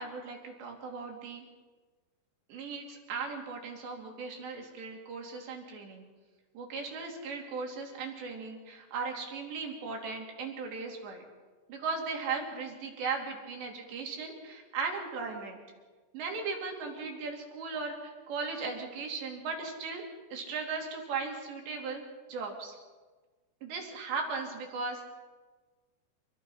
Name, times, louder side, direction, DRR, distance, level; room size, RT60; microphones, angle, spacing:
voice 1, 0.0-1.4 2.5-6.0 6.5-11.2 11.7-15.6 16.1-20.0 20.3-22.0 22.3-22.7 23.6-25.0, right 4 dB, 65° right, 1 dB, 5.1 m, -37 dB
27.5 x 21.0 x 5.7 m, 1.3 s
omnidirectional pair, 5.5 m